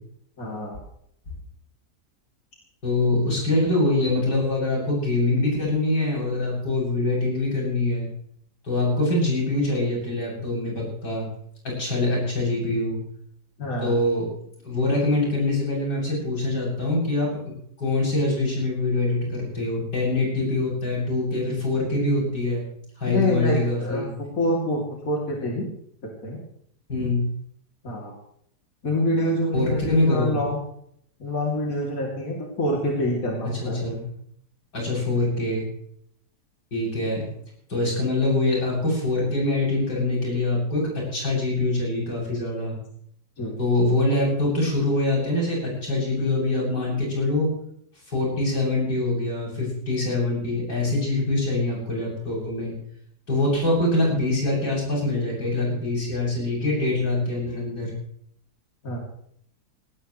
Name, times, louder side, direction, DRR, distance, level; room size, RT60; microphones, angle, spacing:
voice 1, 0.4-0.8 13.6-14.0 23.0-24.1 24.4-25.7 26.2-26.4 27.8-28.1 28.8-30.6 31.2-33.8 43.4-43.6 58.8-59.0, left 1 dB, 55° left, -2 dB, 3.4 m, -26 dB
voice 2, 2.8-8.1 8.6-11.3 11.6-13.0 13.8-14.3 14.6-17.4 17.8-22.6 23.0-24.1 26.9-27.2 29.5-30.3 33.6-34.0 34.7-35.7 36.7-37.3 37.7-42.8 43.6-47.5 48.1-52.7 53.3-57.9, left 2 dB, 85° left, -4 dB, 8.6 m, -24 dB
19.5 x 18.0 x 3.2 m, 0.68 s
omnidirectional pair, 1.8 m